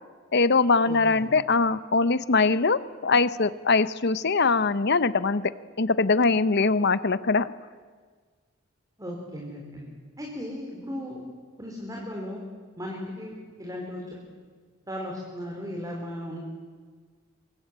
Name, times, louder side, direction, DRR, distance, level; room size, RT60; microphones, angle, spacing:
voice 1, 0.3-5.4 5.8-7.5, left 4 dB, 55° left, 14 dB, 0.9 m, -22 dB
voice 2, 0.9-1.2 9.0-9.9 10.2-11.2 11.6-12.4 12.8-14.2 14.9-16.4, left 1 dB, 20° right, -1 dB, 4.1 m, -36 dB
25.0 x 23.0 x 8.9 m, 1.5 s
head